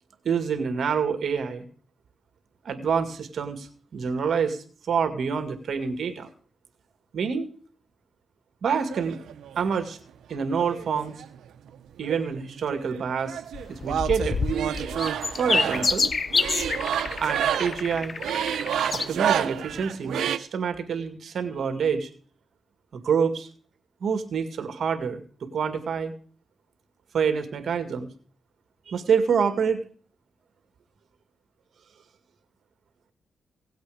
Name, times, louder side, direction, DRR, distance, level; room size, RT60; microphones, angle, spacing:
voice 1, 0.2-1.7 2.6-3.7 3.9-6.3 7.1-7.5 8.6-9.2 9.6-10.0 10.3-11.1 12.0-13.4 13.7-14.4 15.4-16.2 17.2-18.1 18.9-22.1 22.9-23.5 24.0-26.1 27.1-28.1 28.9-29.8, right 6 dB, 65° right, 7 dB, 2.1 m, -27 dB
sound 1, 8.9-9.8 10.6-11.7 12.0-20.4, right 9 dB, 85° right, 0.7 m, -29 dB
sound 2, 13.5-19.1 19.7-19.8, left 4 dB, 45° left, 0.7 m, -28 dB
17.5 x 8.2 x 5.0 m, 0.43 s
cardioid pair, 85°, 0 cm